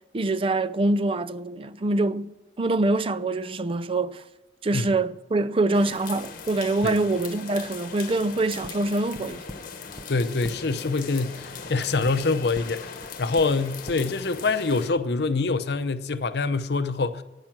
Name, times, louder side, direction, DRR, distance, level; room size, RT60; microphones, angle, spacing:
voice 1, 0.1-4.2 4.6-9.4, right 2 dB, 30° right, 0.5 m, -25 dB
sound 1, 5.7-14.9, left 5 dB, 50° left, 1.1 m, -40 dB
sound 2, 8.6-8.7 9.1-9.6 9.9-10.0 10.4-10.5 12.0-12.1 12.5-12.7 13.0-13.1 13.3-13.5 13.8-14.0, equal, ahead, 0.7 m, -40 dB
voice 2, 10.1-17.2, left 3 dB, 65° left, 0.7 m, -25 dB
13.5 x 9.7 x 6.0 m
head